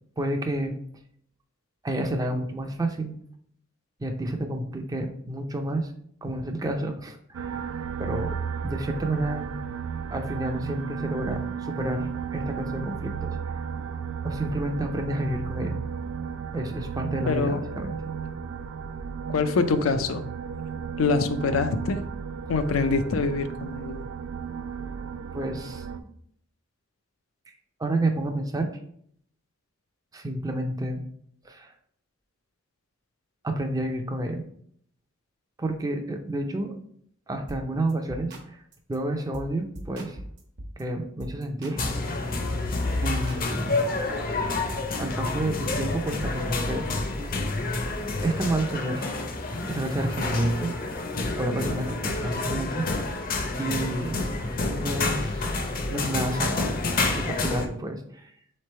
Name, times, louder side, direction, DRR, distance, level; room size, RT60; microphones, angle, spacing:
voice 1, 0.2-0.8 1.8-3.1 4.0-5.9 6.2-8.4 8.6-9.5 10.1-13.7 14.2-15.8 16.5-17.9 25.3-26.1 27.8-28.7 30.1-31.0 31.4-31.7 33.4-34.4 35.6-36.7 37.3-38.3 38.9-40.2 40.8-41.8 43.0-44.0 45.0-46.8 48.2-49.1 49.7-51.0 51.4-52.8 53.6-54.2 54.8-55.6 55.9-56.6 56.9-58.3, right 1 dB, 20° right, 5 dB, 0.4 m, -30 dB
sound 1, 7.3-26.0, right 7 dB, 85° right, 0.3 m, -34 dB
voice 2, 17.3-17.6 19.3-20.3 21.0-22.0 22.5-24.1, left 4 dB, 90° left, 9 dB, 0.5 m, -25 dB
sound 2, 37.5-37.6 37.9-38.4 38.7-39.0 39.3-39.5 39.7-40.8 41.2-41.8 42.0-44.1, right 1 dB, 55° right, 0.9 m, -40 dB
sound 3, 41.8-57.7, left 3 dB, 45° left, 0.6 m, -29 dB
3.7 x 3.2 x 4.2 m, 0.65 s
head